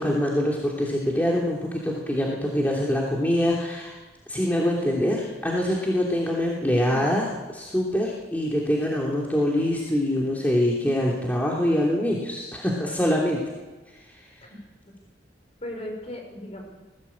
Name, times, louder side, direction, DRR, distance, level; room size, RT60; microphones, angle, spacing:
voice 1, 0.0-4.0 4.3-13.4 13.9-14.0, left 1 dB, 10° left, -3 dB, 3.1 m, -24 dB
voice 2, 15.6-16.8, left 1 dB, 35° left, 2 dB, 6.0 m, -37 dB
20.0 x 17.0 x 8.8 m, 1.2 s
head